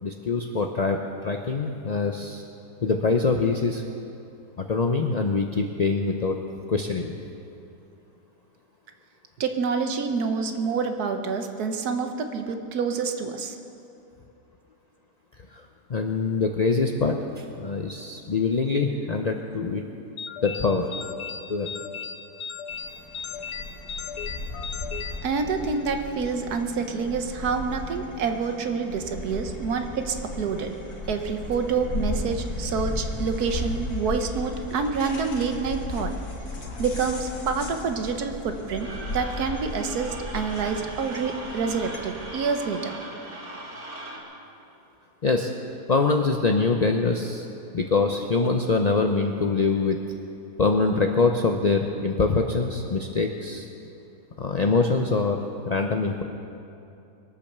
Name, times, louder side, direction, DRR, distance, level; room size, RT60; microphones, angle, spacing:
voice 1, 0.0-2.4 2.8-3.8 4.6-6.4 6.7-7.2 15.5-19.8 20.4-20.9 21.5-21.7 45.2-45.5 45.9-47.5 47.7-50.0 50.6-53.7 54.4-56.2, left 4 dB, 50° left, 3 dB, 0.5 m, -24 dB
voice 2, 9.4-13.6 25.2-30.7 31.1-36.1 36.8-42.9, right 5 dB, 75° right, 6 dB, 1.6 m, -27 dB
sound 1, 20.2-25.9, left 6 dB, 85° left, 1.4 m, -37 dB
sound 2, 22.7-42.3, left 2 dB, 70° left, 2.0 m, -35 dB
sound 3, 38.8-44.2, right 1 dB, 50° right, 2.6 m, -39 dB
22.5 x 8.7 x 6.7 m, 2.7 s
omnidirectional pair, 1.7 m